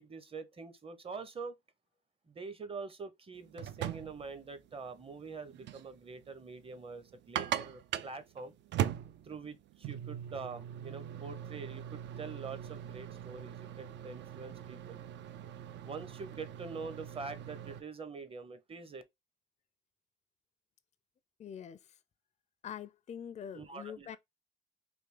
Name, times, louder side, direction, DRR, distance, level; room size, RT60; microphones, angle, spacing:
voice 1, 0.0-1.6 2.3-8.5 9.2-15.0 15.8-19.0 23.5-24.2, right 4 dB, 30° right, 0.8 m, -45 dB
sound 1, 3.3-17.8, right 10 dB, 65° right, 0.4 m, -41 dB
voice 2, 21.4-22.0 22.6-24.2, left 8 dB, 35° left, 0.4 m, -44 dB
3.4 x 2.7 x 3.2 m
cardioid pair, 90°, 20 cm